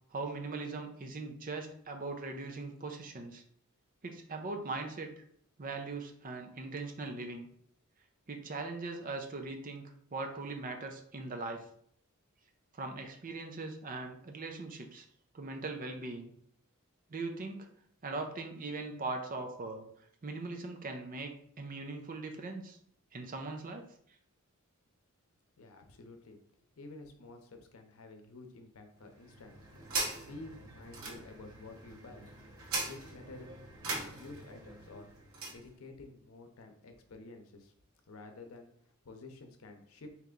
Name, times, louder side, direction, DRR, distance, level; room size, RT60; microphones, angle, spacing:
voice 1, 0.1-3.4 4.0-5.1 5.6-7.5 8.3-11.6 12.7-15.0 15.3-16.3 17.1-17.7 18.0-19.9 20.2-22.8 23.1-23.9, right 3 dB, 40° right, 4 dB, 0.6 m, -40 dB
voice 2, 25.6-26.4 26.8-29.6 30.2-32.3 32.8-33.7 33.9-35.1 35.5-37.7 38.1-40.1, left 2 dB, 80° left, 5 dB, 0.7 m, -51 dB
sound 1, 29.0-35.6, right 3 dB, 85° right, 0.9 m, -41 dB
3.3 x 3.0 x 3.8 m, 0.65 s
head